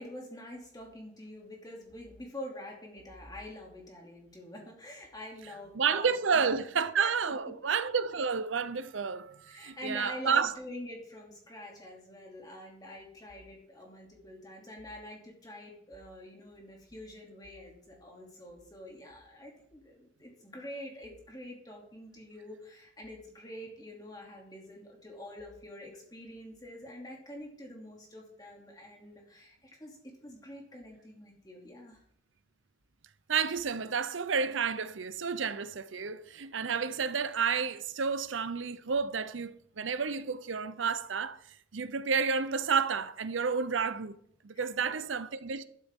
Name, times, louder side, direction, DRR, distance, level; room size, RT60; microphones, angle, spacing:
voice 1, 0.0-6.6 7.0-7.3 9.5-32.0 44.5-45.0, left 1 dB, 20° left, 2.8 m, -46 dB
voice 2, 5.7-10.5 33.3-41.4 41.7-44.2 44.4-45.6, right 5 dB, 85° right, 0.7 m, -30 dB
12.0 x 12.0 x 3.7 m
head